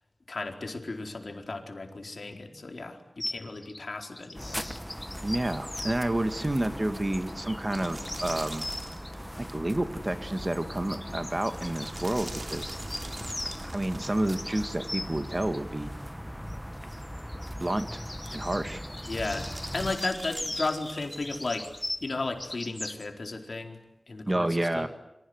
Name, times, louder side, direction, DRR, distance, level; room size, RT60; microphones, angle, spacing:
voice 1, 0.3-4.6 19.0-19.5 19.7-21.7 22.0-23.8 24.1-24.9, left 3 dB, 70° left, 3 dB, 4.3 m, -34 dB
sound 1, 3.2-6.0 7.1-9.1 10.4-13.6 14.0-15.6 16.9-23.0, left 1 dB, 30° left, 2.2 m, -39 dB
sound 2, 4.3-20.0, equal, ahead, 1.1 m, -40 dB
voice 2, 5.2-8.7 9.4-12.8 13.7-15.9 17.6-18.0 18.3-18.8 24.3-24.9, right 1 dB, 30° right, 9 dB, 1.9 m, -30 dB
sound 3, 6.8-22.5, right 2 dB, 60° right, 3.9 m, -47 dB
28.5 x 26.0 x 8.0 m, 0.88 s
wide cardioid pair, 80°, 0 cm